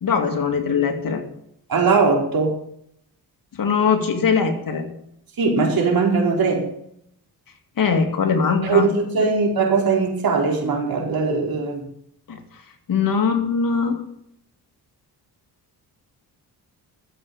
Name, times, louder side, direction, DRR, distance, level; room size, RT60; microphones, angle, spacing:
voice 1, 0.0-1.2 3.6-4.9 7.8-8.9 12.3-12.4 12.9-14.0, left 6 dB, 55° left, 5 dB, 2.4 m, -21 dB
voice 2, 1.7-2.5 5.4-6.7 8.6-11.8, right 4 dB, 60° right, 0 dB, 4.5 m, -20 dB
12.5 x 7.9 x 7.1 m, 0.74 s
cardioid pair, 90°, 40 cm